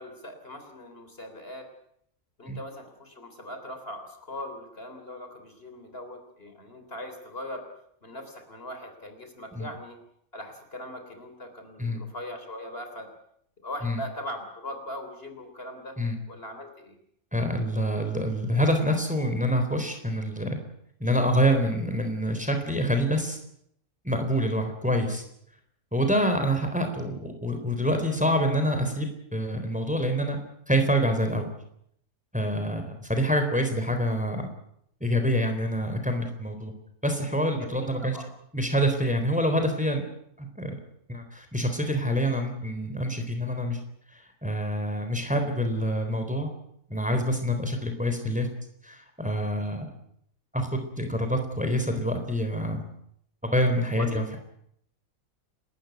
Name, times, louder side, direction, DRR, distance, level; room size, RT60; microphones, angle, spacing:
voice 1, 0.0-1.7 2.4-7.7 8.0-10.0 10.3-13.1 13.6-16.0 16.3-17.0 37.6-38.3 53.9-54.4, left 1 dB, 45° left, 6 dB, 3.9 m, -40 dB
voice 2, 17.3-20.6 21.0-23.4 24.0-25.2 25.9-30.4 30.7-31.5 32.3-34.5 35.0-36.7 37.0-38.2 38.5-40.0 40.4-40.8 41.1-43.8 44.1-46.5 46.9-48.5 48.8-49.9 50.5-52.9 53.4-54.4, equal, 5° right, 6 dB, 3.8 m, -26 dB
30.0 x 13.5 x 9.4 m, 0.73 s
omnidirectional pair, 1.5 m